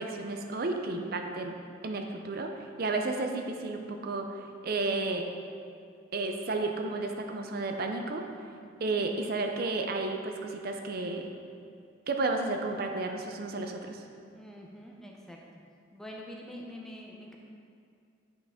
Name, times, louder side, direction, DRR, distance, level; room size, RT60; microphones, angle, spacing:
voice 1, 0.0-1.6 1.8-5.3 6.1-8.3 8.8-11.3 12.1-14.0, right 3 dB, 50° right, 4 dB, 0.5 m, -32 dB
voice 2, 8.6-8.9 14.3-15.4 15.9-17.4, left 1 dB, 5° left, -1 dB, 0.6 m, -45 dB
8.5 x 5.5 x 3.6 m, 2.3 s
head